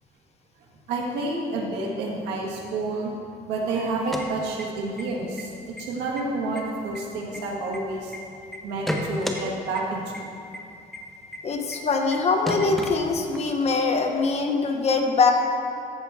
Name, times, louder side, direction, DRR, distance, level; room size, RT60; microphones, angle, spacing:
voice 1, 0.9-3.1 3.5-8.1 8.6-10.2, right 2 dB, 90° right, -1 dB, 1.7 m, -29 dB
sound 1, 3.9-5.0 5.4-5.5 5.8-6.2 6.6-8.2 8.5-9.4 9.8-9.9 10.1-10.2 10.5-10.6 10.9-11.0 11.3-11.4 11.7-11.8 12.1-12.2 12.5-13.5, equal, ahead, 0.9 m, -32 dB
voice 2, 11.4-15.3, left 4 dB, 40° left, 4 dB, 1.0 m, -23 dB
14.0 x 6.0 x 3.6 m, 2.7 s
cardioid pair, 110°, 17 cm